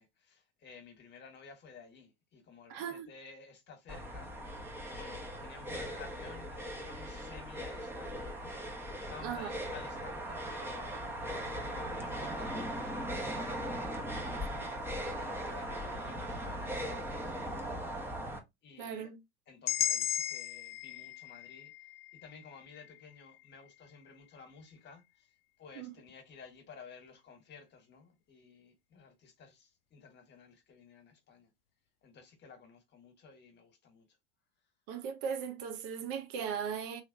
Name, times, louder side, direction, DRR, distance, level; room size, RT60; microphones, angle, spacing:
voice 1, 0.0-17.7 18.6-19.1 19.5-31.5 32.0-34.1, left 5 dB, 35° left, 1.4 m, -54 dB
voice 2, 2.7-3.1 9.2-9.5 18.8-19.2 25.8-25.9 34.9-37.0, right 7 dB, 60° right, 0.8 m, -38 dB
sound 1, 3.9-18.4, equal, 10° right, 1.0 m, -39 dB
sound 2, 19.7-23.7, left 10 dB, 75° left, 0.5 m, -37 dB
3.3 x 2.8 x 2.7 m
hypercardioid pair, 80°, 29 cm